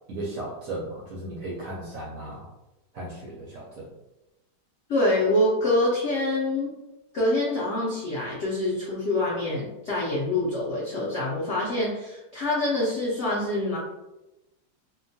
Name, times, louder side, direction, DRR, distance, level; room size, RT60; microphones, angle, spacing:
voice 1, 0.1-2.5 2.9-3.9, right 1 dB, 70° right, -4 dB, 0.8 m, -35 dB
voice 2, 4.9-6.7 7.1-13.8, left 1 dB, 75° left, -6 dB, 0.6 m, -25 dB
2.8 x 2.2 x 2.7 m, 0.99 s
omnidirectional pair, 1.9 m